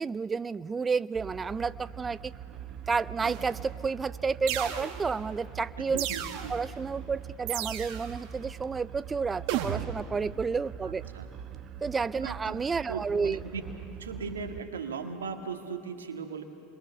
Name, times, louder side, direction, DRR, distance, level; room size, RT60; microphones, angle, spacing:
voice 1, 0.0-2.3 2.9-6.1 6.5-11.0 11.8-13.4, right 5 dB, 20° right, 16 dB, 0.5 m, -31 dB
sound 1, 1.1-14.6, right 9 dB, 40° right, 1.3 m, -43 dB
sound 2, 3.2-3.7 4.5-5.3 6.0-6.7 7.5-8.2 9.5-10.2, right 11 dB, 65° right, 1.6 m, -34 dB
voice 2, 5.8-6.6 10.8-11.3 12.2-12.6 12.9-13.6 13.9-16.4, right 5 dB, 90° right, 5 dB, 2.0 m, -38 dB
29.5 x 22.0 x 6.9 m, 3.0 s
hypercardioid pair, 85°, 0 cm